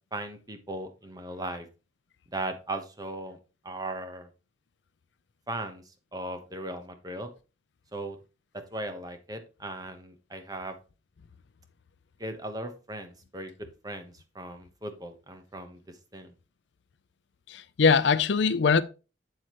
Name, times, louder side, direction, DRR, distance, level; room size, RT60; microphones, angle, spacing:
voice 1, 0.1-1.7 2.3-3.4 3.6-4.3 5.5-5.8 6.1-7.3 7.9-8.2 8.5-10.8 12.2-13.5 13.8-16.3, right 1 dB, 20° right, 1.0 m, -37 dB
voice 2, 17.5-18.8, left 5 dB, 70° left, 0.5 m, -22 dB
7.8 x 7.7 x 3.0 m
head